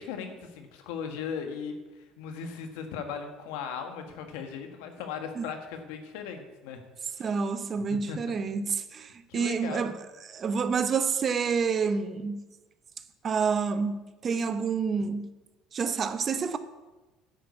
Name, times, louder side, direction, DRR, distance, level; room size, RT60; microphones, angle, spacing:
voice 1, 0.0-6.8 7.1-7.3 8.1-8.2 9.3-9.9, left 6 dB, 90° left, 1.6 m, -38 dB
voice 2, 7.2-12.4 13.2-15.3 15.7-16.6, right 5 dB, 35° right, 0.8 m, -28 dB
10.0 x 6.1 x 8.5 m
cardioid pair, 110°, 0 cm